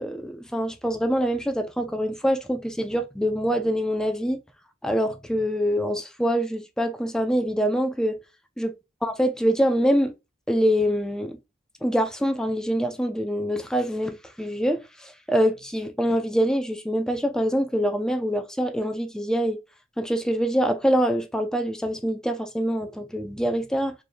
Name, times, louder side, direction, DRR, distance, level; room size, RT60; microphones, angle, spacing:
voice 1, 0.0-4.4 4.8-8.2 8.6-8.7 9.0-10.1 10.5-11.4 11.8-19.6 20.0-23.9, equal, 5° left, 0.5 m, -25 dB
4.3 x 3.3 x 2.2 m
head